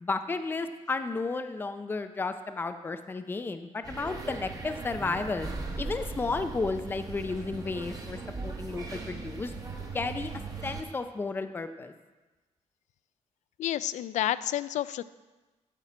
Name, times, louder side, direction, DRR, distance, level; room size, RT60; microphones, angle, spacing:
voice 1, 0.0-5.5 5.8-9.5 9.9-10.3 10.6-11.9, left 3 dB, 15° left, 9 dB, 0.5 m, -33 dB
sound 1, 3.8-10.8, right 3 dB, 30° right, 1.1 m, -38 dB
voice 2, 13.6-15.0, left 12 dB, 75° left, 16 dB, 0.4 m, -30 dB
12.5 x 5.8 x 5.0 m, 1.2 s
wide cardioid pair, 155°, 12 cm